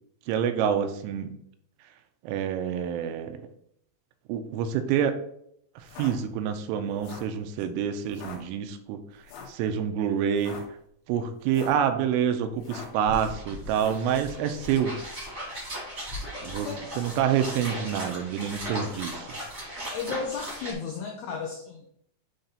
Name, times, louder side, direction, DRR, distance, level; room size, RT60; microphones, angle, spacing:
voice 1, 0.3-1.3 2.2-3.4 4.3-5.2 5.8-9.0 9.5-10.6 11.1-15.0 16.4-16.7 17.0-19.3, right 8 dB, 85° right, 8 dB, 3.1 m, -27 dB
sound 1, 5.8-6.1 6.9-7.3 8.1-8.4 9.3-9.6 10.3-10.6 11.4-11.8 12.6-13.0 13.7-14.1, left 5 dB, 70° left, 3.2 m, -42 dB
sound 2, 12.5-12.6 12.8-20.7, equal, 25° right, 1.3 m, -37 dB
voice 2, 19.9-21.9, left 5 dB, 85° left, 1 dB, 2.3 m, -34 dB
8.1 x 3.8 x 4.1 m, 0.70 s
omnidirectional pair, 5.8 m